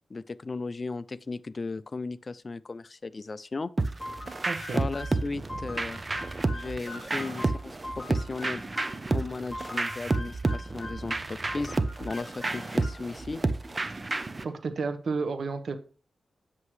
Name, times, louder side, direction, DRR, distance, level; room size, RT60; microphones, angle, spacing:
voice 1, 0.1-3.7 4.7-6.0 6.5-8.7 9.1-13.4, left 3 dB, 40° left, 0.4 m, -36 dB
sound 1, 3.8-14.4, right 3 dB, 30° right, 0.7 m, -31 dB
sound 2, 4.0-9.1 9.5-11.1 11.5-13.2, left 1 dB, 15° left, 4.7 m, -43 dB
voice 2, 4.4-4.8 13.9-14.1 14.4-15.8, right 4 dB, 65° right, 1.2 m, -32 dB
9.5 x 7.5 x 3.2 m
cardioid pair, 80°, 0 cm